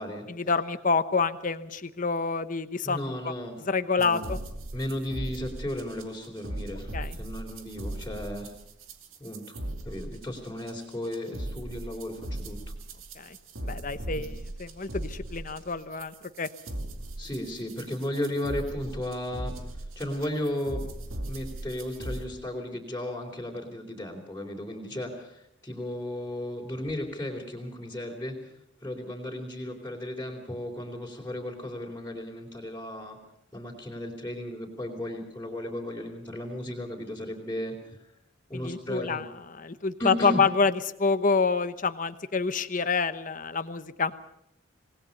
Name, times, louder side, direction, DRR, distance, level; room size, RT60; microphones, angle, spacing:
voice 1, 0.3-3.3 3.7-4.4 6.9-7.2 13.2-13.4 13.6-16.5 38.5-39.3 39.6-40.7 41.0-44.1, left 4 dB, 40° left, 11 dB, 1.0 m, -27 dB
voice 2, 2.8-3.6 4.0-4.3 4.7-8.5 9.2-12.6 14.1-14.3 17.2-19.6 20.0-20.8 21.3-33.2 33.5-38.0 38.5-39.2 40.0-40.4, left 1 dB, 10° left, -4 dB, 3.8 m, -35 dB
sound 1, 4.0-22.2, right 1 dB, 80° right, 2.5 m, -38 dB
26.5 x 19.0 x 5.5 m, 0.79 s
head